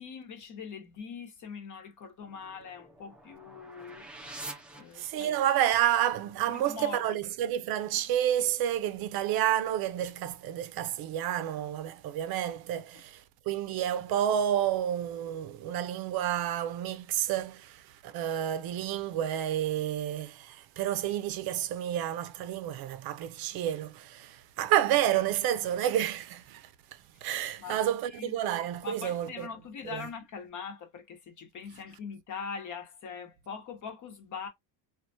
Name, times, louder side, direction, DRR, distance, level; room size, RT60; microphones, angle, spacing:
voice 1, 0.0-4.1 4.7-5.3 6.4-7.2 27.1-27.3 27.6-27.8 28.1-28.3 28.8-34.5, left 6 dB, 45° left, 0.9 m, -42 dB
sound 1, 2.2-5.6, right 2 dB, 5° right, 0.4 m, -47 dB
voice 2, 4.9-29.5 29.8-30.1, right 11 dB, 60° right, 0.5 m, -30 dB
2.3 x 2.1 x 2.6 m
cardioid pair, 115°, 41 cm